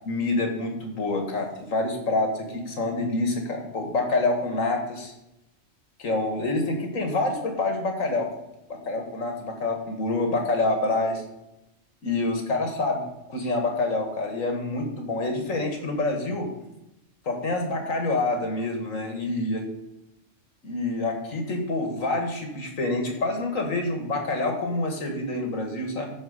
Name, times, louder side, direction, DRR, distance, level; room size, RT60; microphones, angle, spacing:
voice 1, 0.1-5.1 6.0-8.3 8.7-11.2 12.0-16.5 17.3-19.6 20.6-26.1, left 2 dB, 90° left, 3 dB, 2.2 m, -27 dB
13.0 x 4.6 x 6.6 m, 0.91 s
omnidirectional pair, 1.3 m